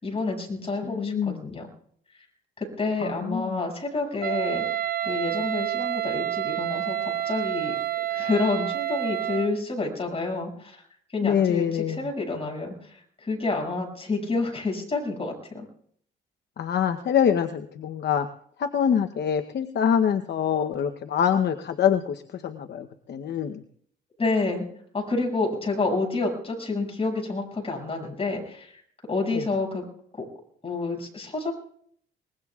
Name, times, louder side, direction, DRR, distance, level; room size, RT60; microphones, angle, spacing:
voice 1, 0.0-1.7 2.6-4.6 5.0-7.8 8.1-10.8 11.1-15.6 24.2-24.7 24.9-28.8 29.1-29.8 30.1-30.2 30.6-31.5, left 3 dB, 30° left, 1 dB, 6.5 m, -29 dB
voice 2, 0.8-1.4 3.0-3.6 11.2-12.1 16.6-18.3 18.6-23.6 29.3-29.5, left 8 dB, 60° left, 7 dB, 0.9 m, -25 dB
Wind instrument woodwind instrument, 4.2-9.6, right 12 dB, 50° right, 0.6 m, -28 dB
23.5 x 20.5 x 2.4 m, 0.63 s
cardioid pair, 90°, 20 cm